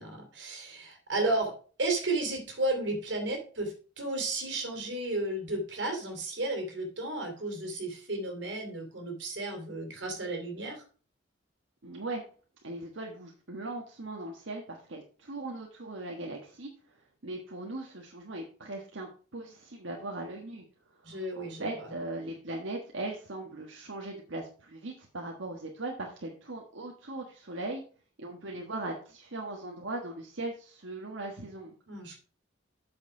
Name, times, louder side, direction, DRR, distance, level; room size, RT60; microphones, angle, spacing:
voice 1, 0.0-1.5 1.8-10.8 21.0-21.9 31.9-32.2, right 2 dB, 70° right, 2 dB, 3.1 m, -33 dB
voice 2, 11.8-12.2 12.6-16.7 17.2-20.6 21.0-27.8 28.2-31.7, right 2 dB, 85° right, 1 dB, 1.4 m, -39 dB
8.0 x 6.6 x 4.9 m, 0.40 s
head